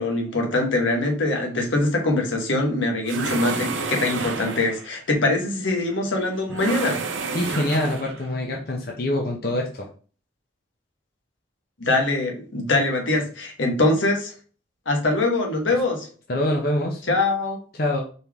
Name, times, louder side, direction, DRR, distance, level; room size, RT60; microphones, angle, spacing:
voice 1, 0.0-7.0 11.8-14.3 14.8-16.1 17.1-17.6, left 2 dB, 85° left, 1 dB, 1.3 m, -23 dB
sound 1, 3.1-4.9 6.5-8.3, right 4 dB, 80° right, 0.6 m, -30 dB
voice 2, 7.3-9.9 16.3-17.0 17.7-18.0, left 1 dB, 50° left, 1 dB, 0.7 m, -25 dB
4.3 x 3.5 x 3.5 m, 0.39 s
head